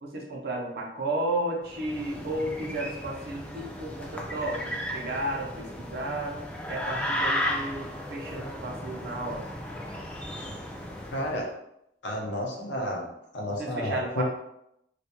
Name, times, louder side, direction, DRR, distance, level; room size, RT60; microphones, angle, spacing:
voice 1, 0.0-6.4 6.7-9.5 13.5-14.2, right 1 dB, 60° right, 0 dB, 0.6 m, -33 dB
sound 1, 1.7-11.4, equal, 10° left, 0.4 m, -35 dB
voice 2, 11.1-11.5 12.0-14.2, equal, 75° left, -2 dB, 0.6 m, -31 dB
2.3 x 2.1 x 2.8 m, 0.79 s
head